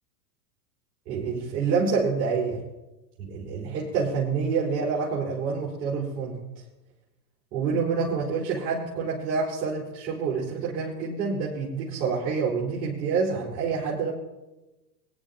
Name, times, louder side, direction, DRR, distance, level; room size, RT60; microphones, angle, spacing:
voice 1, 1.1-2.6 3.2-6.4 7.5-14.1, right 5 dB, 60° right, -7 dB, 5.2 m, -27 dB
24.0 x 10.5 x 3.0 m, 1.0 s
hypercardioid pair, 105°, 49 cm